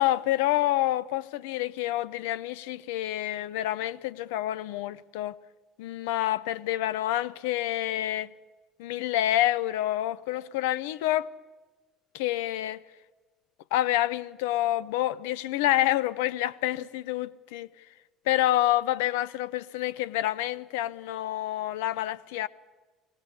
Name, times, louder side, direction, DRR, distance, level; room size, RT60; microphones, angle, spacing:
voice 1, 0.0-5.3 5.8-8.3 8.8-11.3 12.1-12.8 13.7-17.7 18.3-22.5, left 14 dB, 70° left, 0.7 m, -28 dB
24.5 x 19.5 x 7.1 m
figure-of-eight pair, 60°, 0 cm